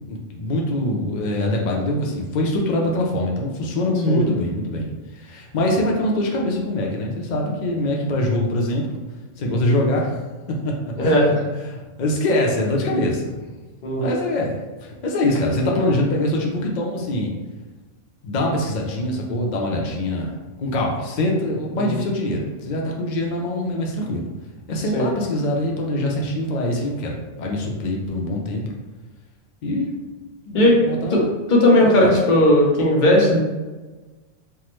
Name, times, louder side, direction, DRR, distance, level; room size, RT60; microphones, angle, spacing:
voice 1, 0.1-8.9 9.4-10.2 10.5-11.2 11.6-13.4 13.9-17.3 18.2-24.2 24.7-28.7 29.6-29.9 30.5-31.3 31.9-32.2, left 1 dB, 90° left, -1 dB, 0.4 m, -24 dB
voice 2, 11.0-11.3 13.8-14.1 21.7-21.9 24.9-25.1 30.5-30.8 31.1-31.2 31.5-33.4, left 1 dB, 50° left, -2 dB, 0.7 m, -16 dB
3.4 x 2.0 x 2.9 m, 1.2 s
omnidirectional pair, 1.3 m